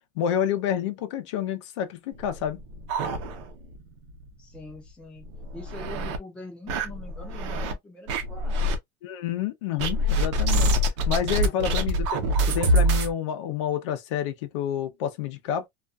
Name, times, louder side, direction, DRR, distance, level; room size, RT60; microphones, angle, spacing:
voice 1, 0.2-2.6 9.0-10.7 11.1-12.0 12.5-15.7, left 9 dB, 75° left, 0.6 m, -29 dB
sound 1, 2.2-3.8 4.1-4.2 4.6-4.7 5.3-6.2 6.7-7.7 8.1-8.8 9.8-13.1, equal, 75° right, 0.7 m, -25 dB
voice 2, 4.4-5.3 5.5-8.8 11.4-12.0, left 2 dB, 5° left, 0.7 m, -44 dB
2.4 x 2.3 x 2.4 m
supercardioid pair, 175°, 15 cm